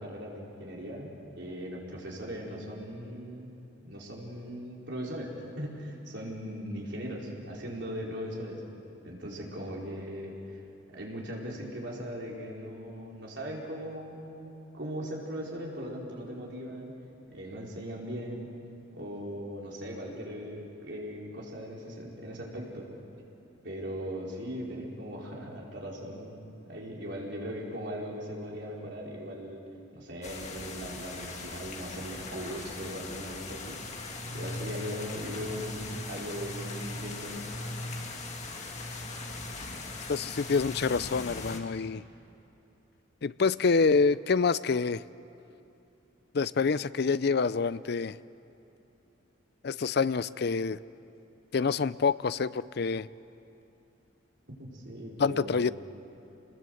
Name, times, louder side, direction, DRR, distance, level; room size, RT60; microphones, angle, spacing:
voice 1, 0.0-3.5 3.8-8.6 9.0-10.4 10.9-16.9 17.3-18.5 18.9-22.9 23.6-29.7 29.9-33.8 34.3-37.4 54.5-55.7, equal, 65° right, -3 dB, 4.8 m, -39 dB
sound 1, 30.2-41.6, left 2 dB, 35° left, 2.1 m, -39 dB
voice 2, 40.1-42.0 43.2-45.0 46.3-48.2 49.6-50.8 51.5-53.1 55.2-55.7, left 4 dB, 55° left, 17 dB, 0.5 m, -27 dB
28.0 x 20.5 x 7.9 m, 2.8 s
head